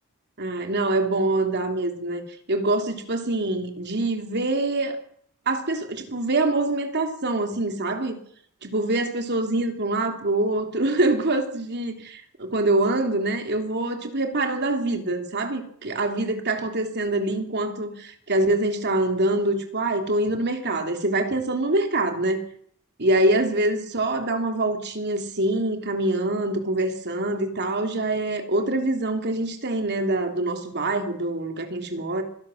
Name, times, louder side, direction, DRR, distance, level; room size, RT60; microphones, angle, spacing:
voice 1, 0.4-2.2 2.5-5.0 5.5-8.2 8.6-22.4 23.0-32.2, right 2 dB, 50° right, 3.4 m, -25 dB
25.5 x 17.5 x 6.5 m
head